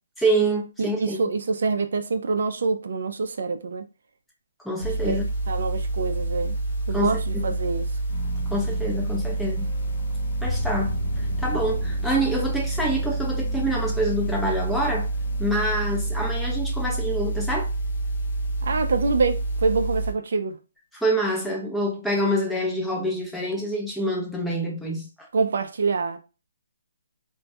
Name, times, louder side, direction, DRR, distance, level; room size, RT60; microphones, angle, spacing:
voice 1, 0.2-1.2 4.6-5.2 6.9-7.5 8.5-9.7 10.4-11.0 11.4-15.1 15.4-17.7 20.9-25.3, right 1 dB, ahead, 0.5 m, -26 dB
voice 2, 0.8-3.8 5.0-5.2 5.5-6.6 6.9-7.9 18.6-20.6 25.3-26.2, right 4 dB, 65° right, 0.3 m, -25 dB
sound 1, 4.8-20.1, right 2 dB, 50° left, 0.6 m, -28 dB
sound 2, 8.1-16.1, left 1 dB, 25° left, 0.8 m, -38 dB
2.2 x 2.1 x 2.6 m
hypercardioid pair, 165°, 0 cm